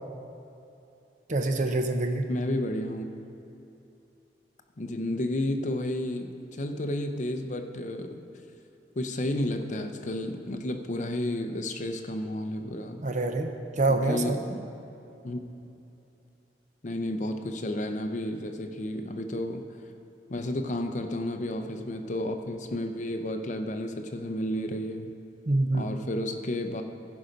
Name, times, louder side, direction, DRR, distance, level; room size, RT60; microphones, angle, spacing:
voice 1, 1.3-2.3 13.0-14.4 25.5-25.9, right 2 dB, 45° right, 6 dB, 0.7 m, -26 dB
voice 2, 2.3-3.1 4.8-8.2 9.0-13.0 13.9-14.6 15.2-15.4 16.8-19.6 20.3-25.1 25.7-26.8, left 1 dB, 45° left, 6 dB, 0.6 m, -32 dB
15.5 x 5.2 x 5.1 m, 2.8 s
head